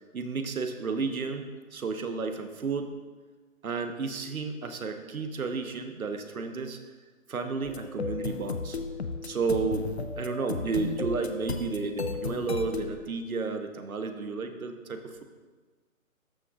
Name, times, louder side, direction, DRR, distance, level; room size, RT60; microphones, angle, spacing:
voice 1, 0.1-2.9 3.6-6.8 7.3-8.8 9.2-15.2, right 4 dB, 90° right, 7 dB, 1.1 m, -32 dB
sound 1, 7.6-13.0, left 4 dB, 50° left, 0.5 m, -34 dB
13.5 x 6.3 x 2.4 m, 1.3 s
hypercardioid pair, 180°, 41 cm